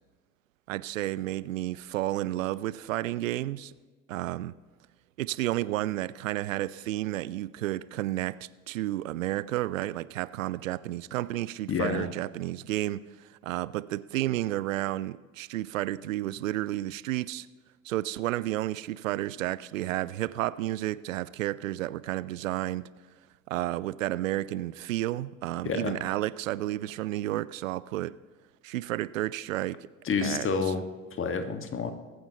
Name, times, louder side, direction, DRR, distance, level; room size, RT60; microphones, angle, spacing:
voice 1, 0.7-3.7 4.1-4.6 5.2-8.4 8.7-17.5 17.8-22.9 23.5-28.1 28.6-29.8 30.2-30.5, right 15 dB, 75° right, 19 dB, 0.5 m, -31 dB
voice 2, 11.7-12.1 25.6-26.0 30.0-31.9, left 5 dB, 30° left, 7 dB, 1.5 m, -29 dB
22.0 x 9.3 x 2.9 m, 1.4 s
figure-of-eight pair, 60°, 39 cm